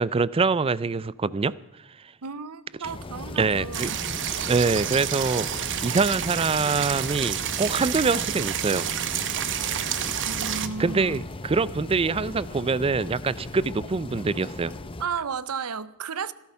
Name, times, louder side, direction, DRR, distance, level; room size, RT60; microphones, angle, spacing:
voice 1, 0.0-1.5 3.4-3.9 4.5-5.5 5.8-8.9 10.8-14.7, right 4 dB, 25° right, 0.4 m, -24 dB
voice 2, 2.2-4.0 10.3-11.2 15.0-16.3, right 5 dB, 80° right, 0.7 m, -33 dB
sound 1, 2.8-15.1, left 2 dB, 25° left, 0.7 m, -38 dB
sound 2, 3.7-10.7, right 10 dB, 55° right, 1.0 m, -29 dB
16.5 x 13.0 x 5.6 m
head